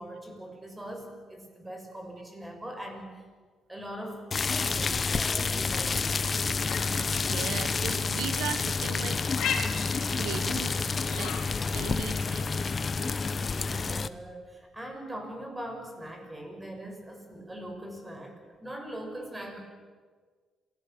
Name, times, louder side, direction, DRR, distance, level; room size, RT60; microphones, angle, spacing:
voice 1, 0.0-3.2 3.7-6.2 13.5-19.6, right 1 dB, 15° right, 4 dB, 6.2 m, -41 dB
sound 1, 4.3-14.1, left 4 dB, 35° left, 0.9 m, -29 dB
Vautour-Cri, 6.6-11.9, left 7 dB, 80° left, 3.5 m, -38 dB
voice 2, 7.1-9.2 9.9-10.8 11.1-11.4 11.7-12.6, right 10 dB, 85° right, 12 dB, 0.9 m, -38 dB
28.0 x 18.5 x 7.2 m, 1.5 s
cardioid pair, 90°, 0 cm